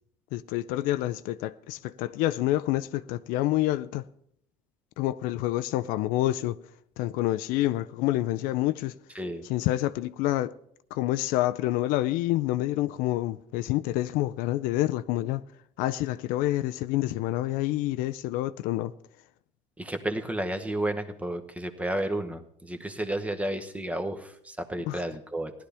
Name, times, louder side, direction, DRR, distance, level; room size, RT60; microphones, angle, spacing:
voice 1, 0.3-4.0 5.0-6.6 7.0-8.9 9.5-10.5 10.9-15.4 15.8-18.9 24.9-25.0, left 15 dB, 70° left, 0.5 m, -27 dB
voice 2, 19.8-25.5, right 1 dB, 10° right, 1.0 m, -32 dB
16.5 x 11.5 x 3.4 m
cardioid pair, 120°, 15 cm